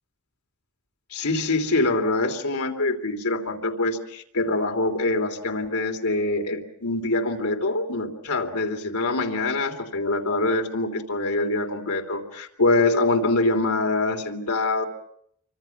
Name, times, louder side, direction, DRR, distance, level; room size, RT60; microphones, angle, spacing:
voice 1, 1.1-14.9, left 2 dB, 80° left, 4 dB, 3.2 m, -24 dB
29.5 x 24.5 x 6.0 m, 0.70 s
head